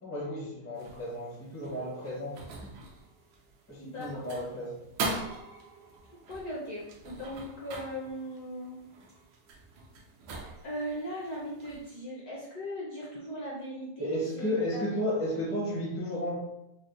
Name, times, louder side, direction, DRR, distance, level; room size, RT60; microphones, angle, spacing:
voice 1, 0.0-2.7 3.7-4.8 14.0-16.4, equal, 15° left, -5 dB, 0.4 m, -33 dB
sound 1, 0.7-12.0, right 3 dB, 80° right, 1.5 m, -42 dB
voice 2, 3.8-4.3 6.3-8.8 10.6-14.8, equal, 60° left, -6 dB, 1.0 m, -38 dB
4.9 x 2.1 x 2.5 m, 0.86 s
omnidirectional pair, 2.3 m